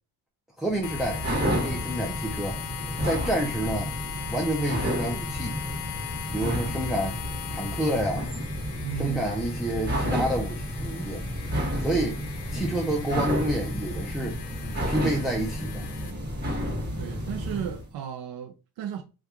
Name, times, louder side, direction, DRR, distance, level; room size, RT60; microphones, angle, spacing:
voice 1, 0.6-1.2 1.6-2.6 3.0-3.9 4.3-5.6 6.3-7.2 7.5-8.2 9.0-11.2 11.8-12.2 12.5-14.4 14.9-15.8, right 1 dB, ahead, 0.4 m, -28 dB
sound 1, 0.7-17.8, equal, 25° right, 1.2 m, -31 dB
sound 2, 0.8-16.1, left 11 dB, 80° left, 0.5 m, -39 dB
voice 2, 8.8-9.3 17.0-19.0, right 9 dB, 60° right, 0.5 m, -35 dB
2.9 x 2.4 x 3.5 m
cardioid pair, 115°, 42 cm